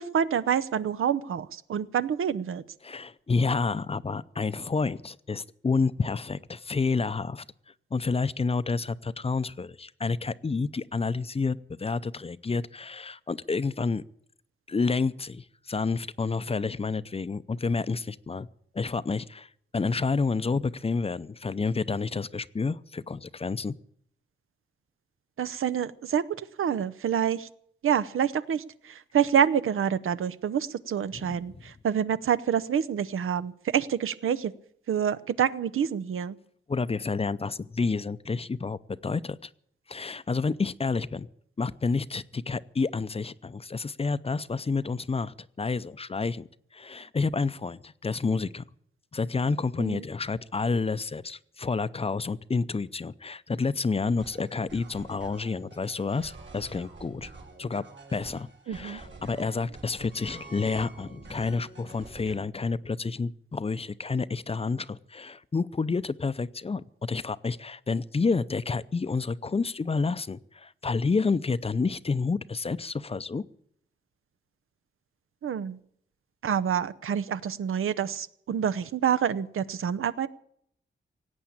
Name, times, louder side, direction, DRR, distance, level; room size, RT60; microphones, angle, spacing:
voice 1, 0.0-2.6 25.4-27.5 27.8-34.5 34.9-36.4 49.8-50.0 58.7-59.0 75.4-75.8 76.4-80.3, right 8 dB, 85° right, 14 dB, 0.7 m, -27 dB
voice 2, 2.8-7.4 7.9-14.0 14.7-18.5 18.7-23.8 31.1-31.6 36.7-39.5 39.9-41.3 41.6-48.6 49.1-57.3 57.6-57.9 58.1-73.4, left 4 dB, 30° left, 16 dB, 0.5 m, -29 dB
sound 1, 54.1-62.4, right 3 dB, 60° right, 3.0 m, -48 dB
17.5 x 8.5 x 8.7 m, 0.68 s
wide cardioid pair, 95°, 21 cm